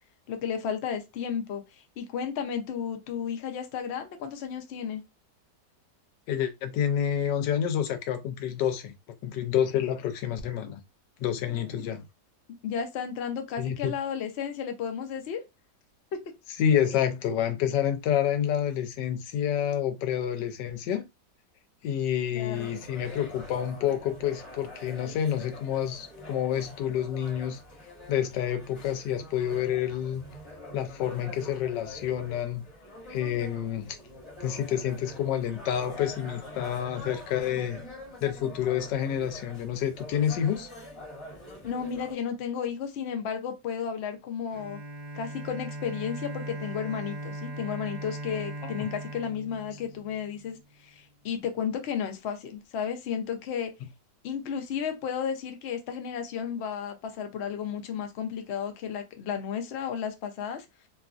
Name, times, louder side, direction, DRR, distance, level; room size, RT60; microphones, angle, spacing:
voice 1, 0.3-5.0 11.5-11.9 12.6-15.4 22.3-22.8 41.6-44.8 45.1-53.7 54.2-60.7, left 7 dB, 65° left, 0.6 m, -33 dB
voice 2, 6.3-8.9 9.2-10.8 11.2-12.0 13.6-13.9 16.6-21.0 21.8-27.6 28.1-30.2 30.7-32.6 33.1-34.0 34.4-37.8 38.2-40.7 48.6-48.9, left 9 dB, 85° left, 1.2 m, -28 dB
sound 1, 22.5-42.1, left 1 dB, 20° left, 1.1 m, -45 dB
Bowed string instrument, 44.5-50.5, right 1 dB, 70° right, 0.3 m, -39 dB
2.9 x 2.4 x 2.4 m
omnidirectional pair, 1.8 m